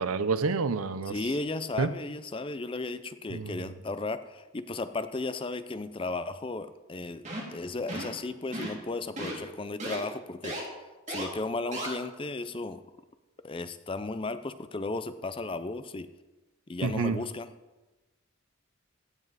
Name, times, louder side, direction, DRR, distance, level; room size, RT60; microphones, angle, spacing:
voice 1, 0.0-1.1 1.8-1.9 3.3-3.6 16.8-17.2, right 4 dB, 90° right, 13 dB, 0.6 m, -28 dB
voice 2, 1.1-7.3 7.5-12.8 13.4-16.1 16.7-17.5, left 3 dB, 25° left, 12 dB, 0.5 m, -35 dB
sound 1, 7.2-7.6 7.9-8.2 8.5-8.8 9.2-9.3 9.8-10.0 10.4-10.6 11.1-11.2 11.7-11.9, right 1 dB, 35° right, 2.6 m, -35 dB
15.5 x 7.2 x 4.1 m, 1.1 s
head